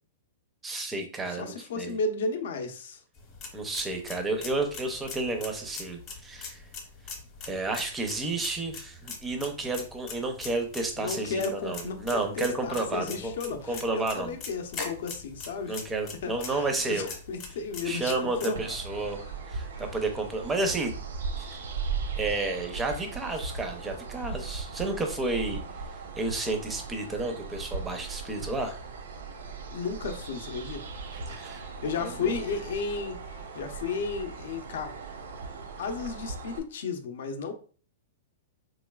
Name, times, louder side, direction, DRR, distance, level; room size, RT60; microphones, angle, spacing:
voice 1, 0.6-2.0 3.5-6.6 7.5-13.3 13.7-14.4 15.7-17.1 17.8-20.9 21.4-21.6 22.2-25.6 26.2-28.8 31.4-31.6 32.0-32.4, right 2 dB, 10° right, 5 dB, 0.5 m, -31 dB
voice 2, 1.3-3.0 11.0-15.8 16.2-18.8 19.7-19.8 29.7-30.8 31.3-34.9 35.8-37.5, left 4 dB, 60° left, 6 dB, 0.6 m, -34 dB
sound 1, 3.2-18.5, left 4 dB, 25° left, 0.8 m, -42 dB
sound 2, 18.5-36.6, right 4 dB, 85° right, 0.6 m, -38 dB
3.9 x 3.1 x 2.2 m, 0.41 s
hypercardioid pair, 170°, 0 cm